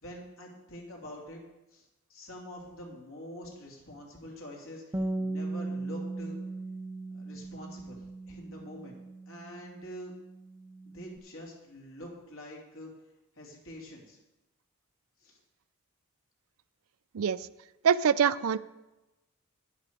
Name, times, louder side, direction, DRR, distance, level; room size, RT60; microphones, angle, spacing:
voice 1, 0.0-1.4 1.7-6.4 7.1-9.0 9.3-10.1 10.8-12.9 13.3-14.2 15.2-15.4, equal, 75° left, -2 dB, 3.1 m, -46 dB
Bass guitar, 4.9-11.2, right 2 dB, 15° right, 0.4 m, -38 dB
voice 2, 17.8-18.6, right 7 dB, 80° right, 16 dB, 0.4 m, -24 dB
11.0 x 11.0 x 4.7 m, 1.0 s
head